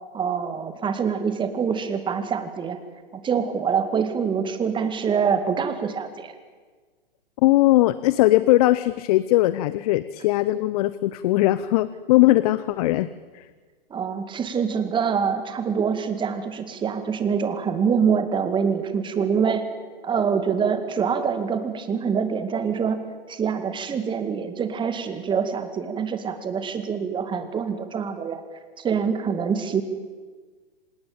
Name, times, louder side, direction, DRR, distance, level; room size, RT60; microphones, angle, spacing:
voice 1, 0.1-2.8 3.1-6.3 13.9-19.6 20.0-23.0 23.3-28.4 28.8-29.8, right 6 dB, 15° right, 9 dB, 2.3 m, -25 dB
voice 2, 7.4-13.1 13.3-13.5, left 17 dB, 40° left, 16 dB, 0.8 m, -19 dB
26.0 x 19.0 x 8.9 m, 1.4 s
figure-of-eight pair, 115°, 29 cm